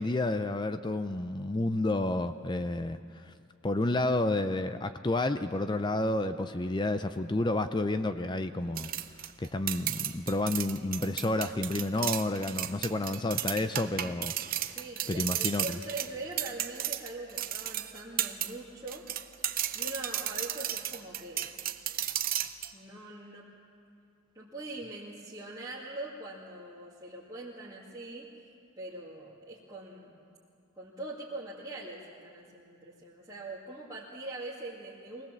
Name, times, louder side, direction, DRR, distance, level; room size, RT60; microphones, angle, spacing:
voice 1, 0.0-3.3 3.6-8.9 9.4-14.3 15.1-15.8, left 2 dB, 20° left, 10 dB, 0.4 m, -30 dB
sound 1, 8.8-18.5 18.9-22.7, right 12 dB, 40° right, 0.7 m, -34 dB
voice 2, 14.7-19.0 19.7-21.5 22.7-23.5 24.3-28.3 28.8-30.2 30.8-35.3, right 2 dB, 15° right, -9 dB, 2.3 m, -42 dB
24.0 x 18.0 x 7.4 m, 2.4 s
head